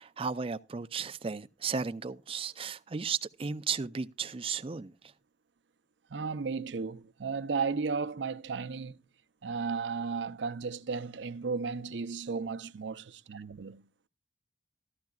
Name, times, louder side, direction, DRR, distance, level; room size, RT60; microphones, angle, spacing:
voice 1, 0.0-4.9, right 5 dB, 30° right, 0.5 m, -35 dB
voice 2, 6.1-9.0 9.4-13.9, right 5 dB, 80° right, 0.6 m, -34 dB
14.0 x 12.0 x 2.3 m
head